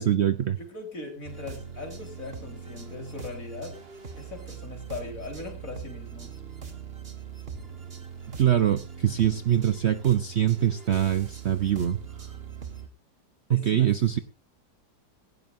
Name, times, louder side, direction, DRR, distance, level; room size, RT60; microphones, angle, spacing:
voice 1, 0.0-0.6 8.4-12.0 13.5-14.2, right 10 dB, 50° right, 10 dB, 0.8 m, -23 dB
voice 2, 0.5-3.8 4.2-6.3 13.5-13.9, left 3 dB, 50° left, 3 dB, 4.6 m, -40 dB
sound 1, 1.2-12.9, right 6 dB, 35° right, 1.9 m, -41 dB
18.0 x 17.0 x 2.7 m, 0.35 s
omnidirectional pair, 1.8 m